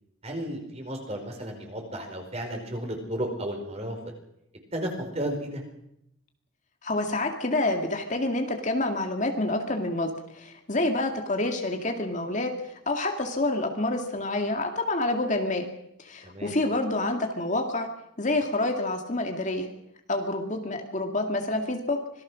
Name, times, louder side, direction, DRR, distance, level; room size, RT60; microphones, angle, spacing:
voice 1, 0.2-3.9 4.7-5.6 16.2-16.5, right 1 dB, 30° right, 3 dB, 4.8 m, -33 dB
voice 2, 6.8-10.1 10.3-15.7 16.0-17.9 18.2-19.7 20.1-22.0, left 2 dB, 35° left, 4 dB, 2.1 m, -28 dB
25.5 x 19.0 x 6.3 m, 0.79 s
head